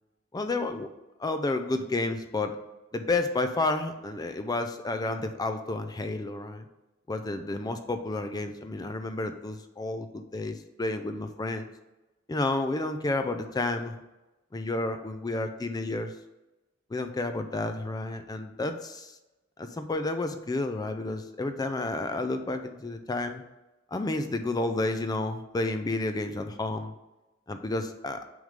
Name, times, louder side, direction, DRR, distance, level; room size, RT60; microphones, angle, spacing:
voice 1, 0.3-0.9 1.2-2.6 2.9-6.7 7.1-11.7 12.3-13.9 14.5-16.1 16.9-19.2 19.6-23.4 23.9-26.9 27.5-28.2, left 2 dB, 20° left, 8 dB, 0.4 m, -31 dB
6.3 x 3.6 x 5.1 m, 1.0 s
head